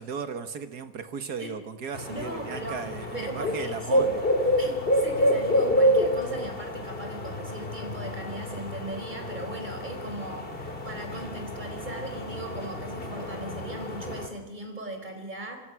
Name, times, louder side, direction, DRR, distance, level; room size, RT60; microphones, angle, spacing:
voice 1, 0.0-4.2, right 5 dB, 65° right, 9 dB, 2.2 m, -36 dB
sound 1, 1.9-14.3, equal, 30° left, 2.6 m, -28 dB
voice 2, 2.1-2.8 3.1-4.1 4.6-15.6, right 1 dB, 25° right, 4 dB, 4.4 m, -38 dB
27.0 x 25.5 x 6.2 m, 1.0 s
omnidirectional pair, 1.9 m